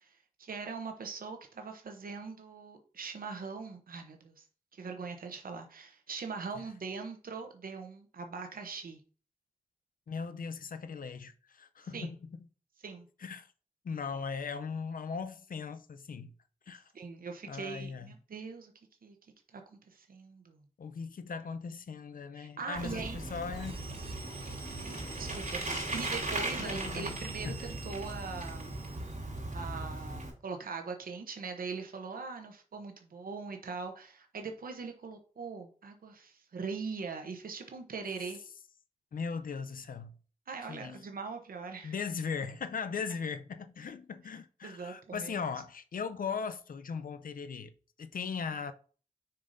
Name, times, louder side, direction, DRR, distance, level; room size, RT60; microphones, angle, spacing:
voice 1, 0.0-4.4 4.7-9.0 11.9-12.1 12.8-13.1 16.9-18.7 19.0-19.2 19.5-20.6 22.3-23.2 24.8-28.7 29.5-38.4 40.5-41.9 44.6-45.3, right 5 dB, 85° right, 0.8 m, -41 dB
voice 2, 10.1-12.4 13.2-13.5 13.8-16.3 16.7-16.9 17.5-18.1 20.8-23.8 26.6-27.1 27.4-27.7 39.1-40.1 40.7-41.0 41.8-48.7, left 5 dB, 75° left, 0.5 m, -38 dB
Bicycle, 22.8-30.3, right 2 dB, 65° right, 2.9 m, -38 dB
sound 1, 23.5-29.2, right 4 dB, 40° right, 0.9 m, -50 dB
6.7 x 5.5 x 2.6 m
cardioid pair, 45°, 14 cm